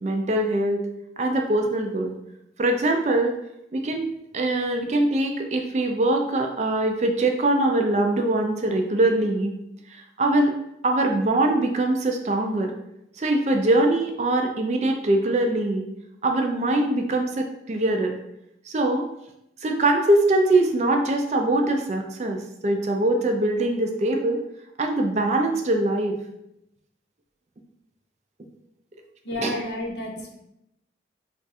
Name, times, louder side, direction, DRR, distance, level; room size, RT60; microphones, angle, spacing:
voice 1, 0.0-0.8 1.2-2.1 2.6-3.4 3.7-4.1 4.3-9.6 9.9-10.6 10.8-12.7 13.2-15.9 16.2-18.2 18.7-19.1 19.6-24.4 24.8-26.2 29.4-29.5, right 2 dB, 40° right, 3 dB, 0.4 m, -22 dB
voice 2, 29.2-30.4, left 1 dB, 75° left, -2 dB, 0.7 m, -31 dB
2.5 x 2.3 x 4.0 m, 0.82 s
head